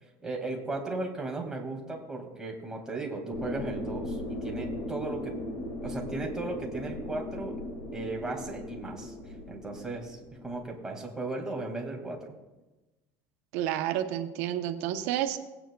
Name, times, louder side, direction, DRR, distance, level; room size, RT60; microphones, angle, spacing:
voice 1, 0.2-5.4 5.8-7.6 7.9-12.4, right 2 dB, 10° right, -1 dB, 2.1 m, -36 dB
sound 1, 3.3-10.7, left 1 dB, 60° left, 1.9 m, -37 dB
voice 2, 13.5-15.4, right 11 dB, 85° right, 7 dB, 0.9 m, -30 dB
18.0 x 9.1 x 2.3 m, 1.1 s
cardioid pair, 135°, 8 cm